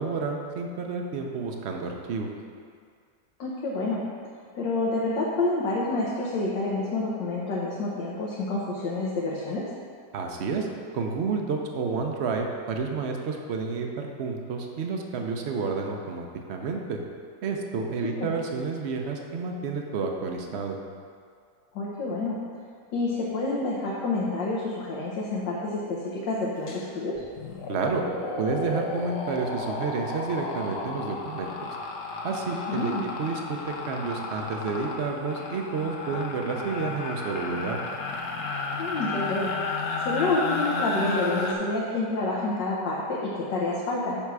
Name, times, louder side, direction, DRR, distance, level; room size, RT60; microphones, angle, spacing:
voice 1, 0.0-2.3 10.1-10.7 10.9-17.0 17.4-20.8 27.7-28.0 28.4-31.8 32.2-32.9 33.2-37.8, right 4 dB, 55° right, 2 dB, 0.8 m, -30 dB
voice 2, 3.4-4.0 4.5-9.6 18.2-18.3 21.7-22.4 22.9-27.2 32.7-33.0 38.8-39.5 40.0-44.2, left 2 dB, 85° left, -5 dB, 1.6 m, -28 dB
sound 1, 26.7-26.8 27.2-41.5, left 3 dB, 55° left, 1.0 m, -33 dB
7.3 x 5.6 x 4.7 m, 2.1 s
omnidirectional pair, 1.9 m